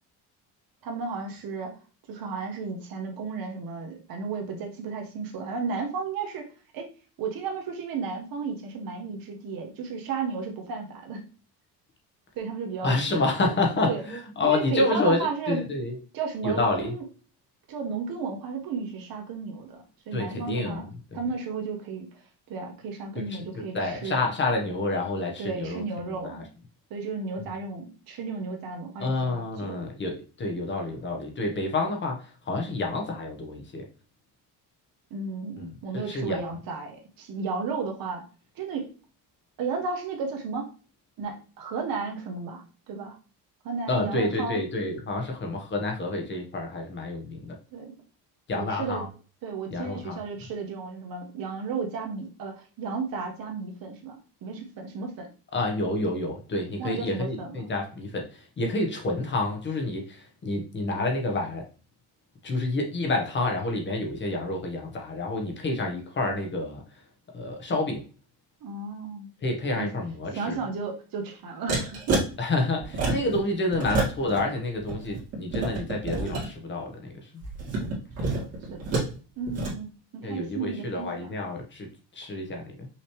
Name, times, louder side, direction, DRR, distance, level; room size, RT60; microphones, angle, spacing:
voice 1, 0.8-1.7 2.1-6.9 7.2-11.2 12.4-13.0 13.8-14.0 14.4-15.6 16.1-17.0 17.7-20.9 21.1-22.1 22.5-24.2 25.4-26.5 26.9-29.8 35.1-38.2 38.5-38.9 39.6-40.7 41.2-43.2 43.6-44.6 47.7-47.9 48.5-49.0 49.4-55.3 56.8-57.7 68.6-69.3 69.7-69.9 70.3-72.2 78.3-79.0 79.4-81.4, right 4 dB, 60° right, 3 dB, 1.3 m, -33 dB
voice 2, 12.8-16.0 16.4-17.0 20.1-21.2 23.1-26.5 29.0-33.9 35.6-36.5 43.9-47.6 48.5-49.1 49.7-50.2 55.5-61.7 62.4-66.8 67.3-68.1 69.4-70.6 72.4-77.4 79.5-79.8 80.2-81.9 82.1-82.9, left 2 dB, 30° left, 2 dB, 1.0 m, -29 dB
sound 1, 71.7-72.3 72.8-73.4 73.7-74.4 74.7-76.5 77.4-79.1 79.5-79.7, right 3 dB, 40° right, 2.0 m, -28 dB
5.7 x 3.0 x 3.1 m, 0.36 s
cardioid pair, 140°, 39 cm